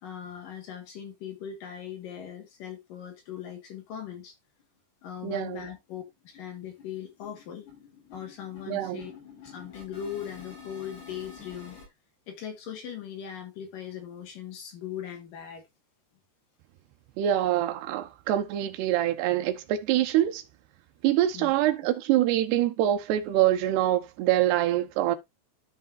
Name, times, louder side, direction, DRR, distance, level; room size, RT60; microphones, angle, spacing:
voice 1, 0.0-4.4 5.0-7.7 8.1-9.1 9.4-11.8 12.3-15.6 21.3-21.5, left 9 dB, 60° left, 2.9 m, -39 dB
sound 1, 4.6-4.7 5.0-5.1 5.5-5.7 5.9-11.9, left 5 dB, 75° left, 8.8 m, -49 dB
voice 2, 5.2-5.7 8.7-9.1 17.2-20.4 21.0-25.2, right 12 dB, 75° right, 3.0 m, -25 dB
13.0 x 5.4 x 2.6 m
omnidirectional pair, 5.1 m